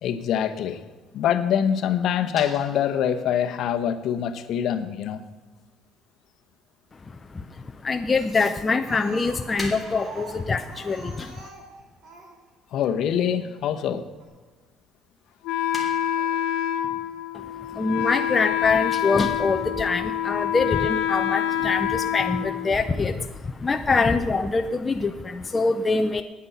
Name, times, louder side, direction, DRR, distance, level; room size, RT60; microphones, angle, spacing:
voice 1, 0.0-0.8 1.1-5.2 12.7-14.0 16.2-16.3, left 9 dB, 55° left, 9 dB, 0.9 m, -24 dB
sound 1, 2.3-5.7 6.6-7.2 7.4-8.8 9.1-14.3 14.7-14.8 15.0-15.3 15.7-17.2, left 1 dB, 10° right, 2.4 m, -43 dB
voice 2, 7.9-10.6 10.9-11.0 17.8-23.1 23.6-25.1 25.5-26.2, left 4 dB, 15° left, 6 dB, 0.5 m, -24 dB
Speech, 8.9-12.4 13.3-13.4 13.8-13.9 14.2-14.3, right 2 dB, 45° right, 2.6 m, -43 dB
Wind instrument woodwind instrument, 15.5-23.2, left 11 dB, 80° left, 1.0 m, -27 dB
9.7 x 9.6 x 7.9 m, 1.3 s
cardioid pair, 170°, 0 cm